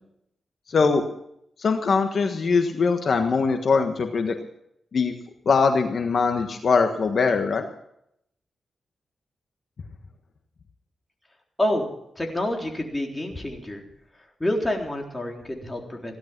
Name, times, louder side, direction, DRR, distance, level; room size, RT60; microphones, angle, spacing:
voice 1, 0.7-1.0 1.6-4.4 4.9-5.2 5.4-7.7, left 4 dB, 60° left, 6 dB, 1.4 m, -22 dB
voice 2, 12.2-13.8 14.4-16.2, left 1 dB, 20° left, 1 dB, 3.8 m, -27 dB
17.0 x 11.5 x 6.0 m, 0.74 s
cardioid pair, 70°, 0 cm